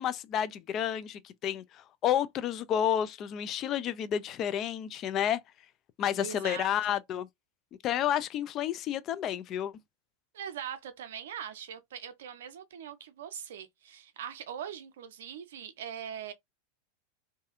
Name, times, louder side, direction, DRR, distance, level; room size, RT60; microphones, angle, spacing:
voice 1, 0.0-5.4 6.0-7.3 7.8-9.7, left 10 dB, 40° left, 0.3 m, -30 dB
voice 2, 6.1-7.0 10.3-16.3, right 9 dB, 70° right, 0.5 m, -41 dB
2.6 x 2.3 x 2.4 m
hypercardioid pair, 90°, 0 cm